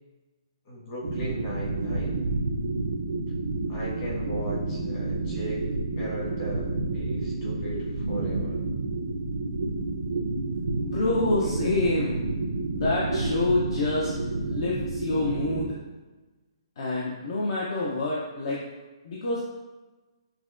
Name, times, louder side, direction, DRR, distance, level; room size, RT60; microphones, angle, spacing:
voice 1, 0.6-2.2 3.7-5.6 5.9-8.6, right 1 dB, 35° left, -6 dB, 1.4 m, -37 dB
sound 1, 1.0-15.7, right 3 dB, 80° right, 0.6 m, -30 dB
voice 2, 10.8-12.2 12.7-14.1 14.4-15.8 16.8-18.6 19.0-19.4, left 2 dB, 55° left, -5 dB, 0.7 m, -27 dB
5.7 x 2.2 x 2.5 m, 1.2 s
hypercardioid pair, 150°, 3 cm